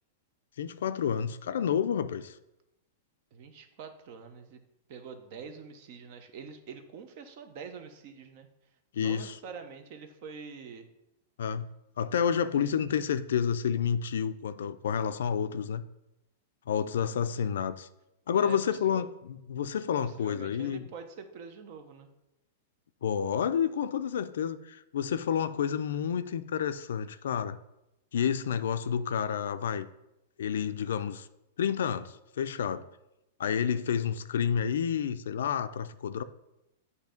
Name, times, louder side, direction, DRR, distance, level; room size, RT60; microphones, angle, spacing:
voice 1, 0.6-2.3 8.9-9.4 11.4-11.7 12.0-15.8 16.7-17.9 18.3-20.9 23.0-27.6 28.1-29.9 30.4-31.3 31.6-32.8 33.4-36.2, left 8 dB, 85° left, 12 dB, 0.4 m, -29 dB
voice 2, 3.3-4.6 4.9-8.5 9.0-10.9 18.3-19.0 20.0-22.1, right 6 dB, 45° right, 7 dB, 0.8 m, -45 dB
8.0 x 2.8 x 5.1 m, 0.88 s
supercardioid pair, 155°, 0 cm